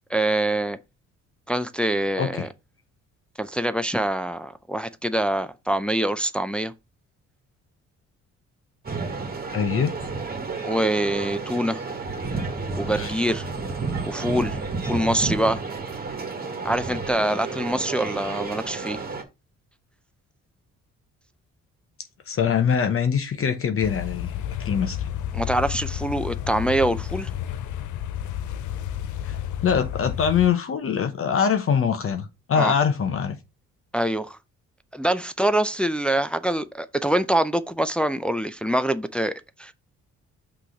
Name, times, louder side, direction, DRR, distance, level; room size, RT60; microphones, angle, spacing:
voice 1, 0.1-0.8 1.5-2.5 3.4-6.7 10.6-11.8 12.8-13.5 14.0-14.6 14.8-15.6 16.6-19.0 25.3-27.3 32.6-32.7 33.9-34.4 34.9-39.7, right 1 dB, 5° left, 0.5 m, -24 dB
voice 2, 2.2-2.5 9.5-9.9 12.9-13.1 22.3-24.3 24.6-25.1 29.2-29.4 29.6-33.4, left 7 dB, 45° left, 0.8 m, -23 dB
sound 1, 8.8-19.2, right 4 dB, 30° right, 1.7 m, -31 dB
sound 2, 23.8-30.5, left 10 dB, 75° left, 0.6 m, -31 dB
5.9 x 3.3 x 5.7 m
cardioid pair, 90°, 30 cm